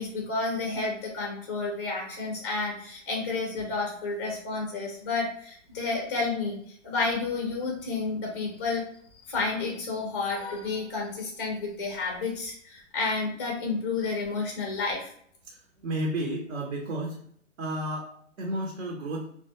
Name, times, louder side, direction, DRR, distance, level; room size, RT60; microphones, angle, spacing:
voice 1, 0.0-8.8 9.2-15.1, left 3 dB, 25° left, -1 dB, 0.3 m, -31 dB
voice 2, 15.4-17.2 17.6-19.3, right 1 dB, 70° right, 1 dB, 0.7 m, -32 dB
2.3 x 2.1 x 2.9 m, 0.63 s
hypercardioid pair, 140°, 38 cm